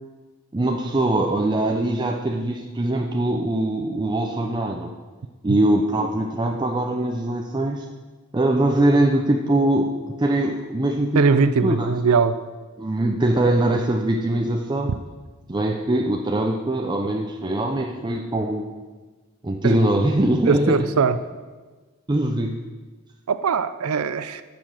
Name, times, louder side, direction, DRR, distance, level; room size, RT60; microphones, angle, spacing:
voice 1, 0.5-4.9 5.4-7.9 8.3-11.9 12.8-15.0 15.5-18.6 19.4-20.8 22.1-22.6, right 1 dB, 20° right, 2 dB, 0.6 m, -22 dB
voice 2, 11.2-12.4 19.6-19.8 20.5-21.2 23.3-24.4, right 5 dB, 85° right, 12 dB, 0.5 m, -20 dB
11.5 x 7.0 x 6.3 m, 1.3 s
head